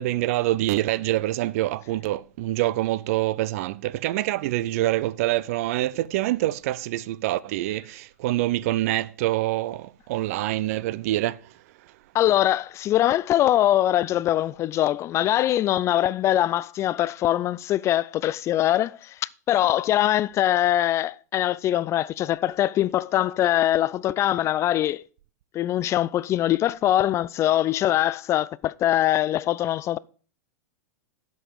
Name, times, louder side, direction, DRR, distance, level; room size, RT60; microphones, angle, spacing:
voice 1, 0.0-11.5, right 16 dB, 60° right, 0.5 m, -26 dB
voice 2, 12.1-25.0 25.5-30.0, left 13 dB, 30° left, 0.4 m, -23 dB
10.0 x 8.0 x 4.8 m
hypercardioid pair, 100°, 9 cm